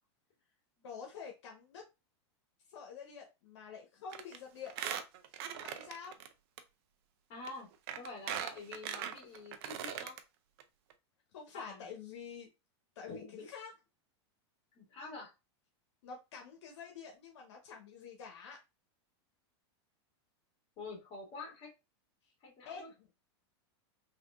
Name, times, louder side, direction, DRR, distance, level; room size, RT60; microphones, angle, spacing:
voice 1, 0.8-1.8 2.7-4.7 5.6-6.2 11.3-12.5 13.0-13.7 16.0-18.6 22.7-22.9, left 6 dB, 75° left, 1 dB, 0.8 m, -48 dB
Squeak, 4.1-4.4 4.7-6.3 6.6-6.7 7.5-7.6 7.9-10.2 10.6-10.7 10.9-11.0, right 9 dB, 60° right, 0.5 m, -40 dB
voice 2, 7.3-7.7 8.0-10.2 11.5-11.9 13.1-13.5 14.7-15.3 20.8-21.7 22.4-22.9, left 3 dB, 40° left, -1 dB, 1.8 m, -47 dB
3.5 x 2.5 x 2.3 m, 0.26 s
supercardioid pair, 135°, 15 cm